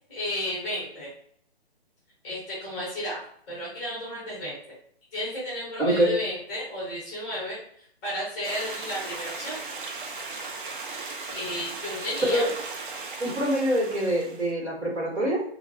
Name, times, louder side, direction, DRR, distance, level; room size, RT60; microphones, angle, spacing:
voice 1, 0.1-1.1 2.2-3.2 3.5-4.7 5.1-9.6 11.3-12.5 13.2-13.4, left 1 dB, 10° left, -6 dB, 0.5 m, -33 dB
voice 2, 5.8-6.1 12.2-12.5 13.2-15.4, right 1 dB, 80° right, -3 dB, 1.2 m, -24 dB
Stream, 8.4-14.5, right 4 dB, 50° right, 0.4 m, -37 dB
2.3 x 2.2 x 2.4 m, 0.64 s
figure-of-eight pair, 145°, 33 cm